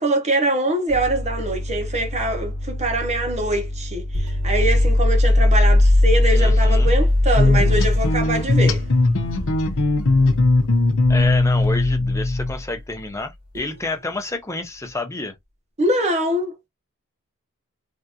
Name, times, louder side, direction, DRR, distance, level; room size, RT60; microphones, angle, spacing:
voice 1, 0.0-8.8 15.8-16.5, right 1 dB, 30° right, 0.8 m, -23 dB
sound 1, 0.9-12.7 13.6-13.9, left 1 dB, 80° right, 1.7 m, -21 dB
voice 2, 6.3-6.9 11.1-15.3, left 2 dB, 15° left, 0.7 m, -29 dB
sound 2, 7.4-12.5, left 2 dB, 60° left, 0.7 m, -19 dB
3.4 x 2.5 x 2.7 m
head